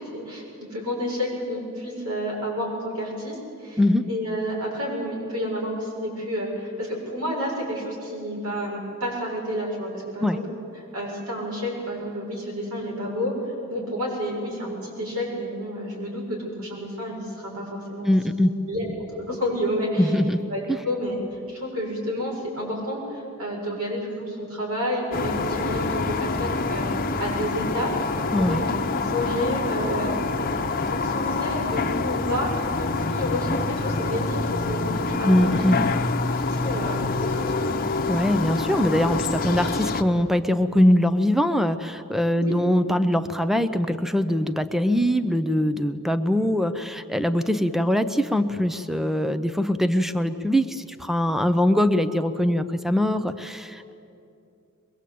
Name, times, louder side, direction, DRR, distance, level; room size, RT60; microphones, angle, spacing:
voice 1, 0.1-3.8 4.1-10.4 10.9-13.3 13.7-18.9 19.2-20.1 20.5-21.2 21.5-27.9 28.4-30.2 30.8-35.6 36.3-37.7 42.4-42.6, equal, 75° right, -3 dB, 7.3 m, -30 dB
voice 2, 3.8-4.1 10.2-10.4 18.1-18.5 20.0-20.4 20.7-20.8 28.3-28.6 35.2-35.8 38.1-53.9, left 1 dB, ahead, 10 dB, 0.6 m, -22 dB
sound 1, 25.1-40.0, left 3 dB, 40° left, 1.0 m, -26 dB
23.5 x 22.0 x 8.6 m, 2.6 s
head